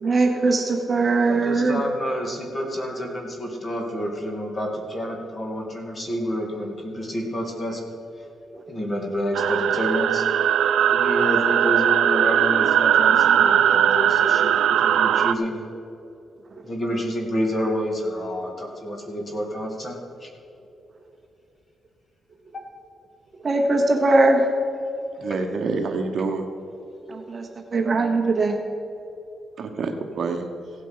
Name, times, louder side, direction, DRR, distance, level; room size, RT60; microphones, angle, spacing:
voice 1, 0.0-1.8 23.4-24.5 27.1-28.6, right 2 dB, 30° right, 3 dB, 0.9 m, -20 dB
voice 2, 1.2-7.9 8.7-10.2 10.9-15.6 16.6-20.3, equal, 25° left, 1 dB, 2.2 m, -29 dB
sound 1, 9.3-15.3, right 9 dB, 85° right, 0.5 m, -19 dB
voice 3, 25.2-26.4 29.6-30.4, right 4 dB, 55° right, 6 dB, 1.1 m, -27 dB
16.0 x 8.2 x 5.6 m, 2.8 s
cardioid pair, 145°, 0 cm